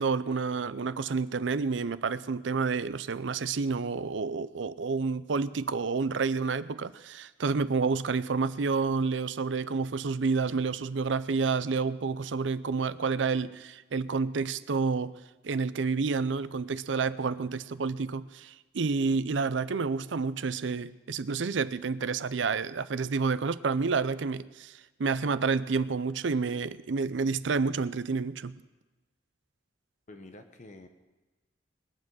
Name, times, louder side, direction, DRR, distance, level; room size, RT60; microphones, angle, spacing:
voice 1, 0.0-15.1 15.4-28.6, right 4 dB, 80° right, 15 dB, 0.5 m, -29 dB
voice 2, 30.1-30.9, left 2 dB, 40° left, 7 dB, 0.9 m, -48 dB
21.0 x 7.3 x 6.2 m, 1.1 s
head